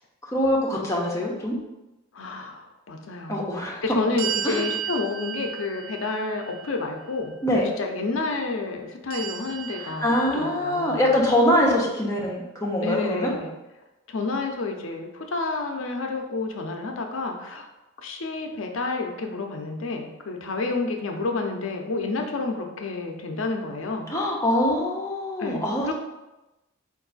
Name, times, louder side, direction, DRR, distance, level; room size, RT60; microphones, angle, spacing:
voice 1, 0.3-1.6 3.3-3.8 4.4-4.6 7.4-7.7 9.8-13.3 24.1-25.9, left 1 dB, 15° left, -3 dB, 0.8 m, -23 dB
voice 2, 2.1-3.4 3.8-7.3 7.6-11.1 12.8-13.5 14.1-17.7 18.0-24.1 25.4-25.9, left 3 dB, 70° left, 3 dB, 0.6 m, -30 dB
sound 1, 4.2-7.3 9.1-10.9, right 9 dB, 45° right, 0.3 m, -34 dB
4.5 x 2.6 x 4.0 m, 1.0 s
head